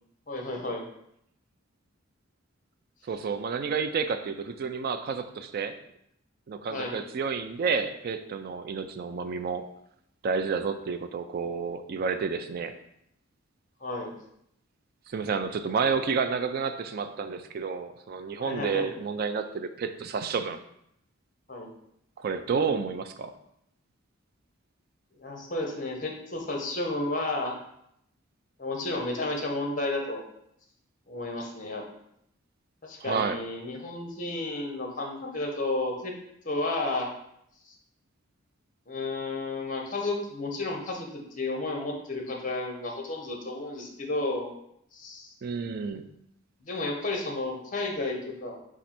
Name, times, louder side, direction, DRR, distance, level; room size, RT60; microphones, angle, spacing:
voice 1, 0.3-0.8 6.7-7.0 13.8-14.1 18.4-18.9 21.5-21.7 25.2-27.5 28.6-30.2 31.1-31.8 32.8-36.1 36.4-37.1 38.9-44.5 44.9-45.3 46.7-48.6, left 2 dB, 40° left, 1 dB, 0.8 m, -32 dB
voice 2, 3.1-5.8 6.5-9.7 10.2-12.7 15.1-20.6 22.2-23.3 33.0-33.4 45.4-46.1, right 5 dB, 50° right, 9 dB, 0.3 m, -30 dB
4.3 x 2.5 x 4.2 m, 0.75 s
head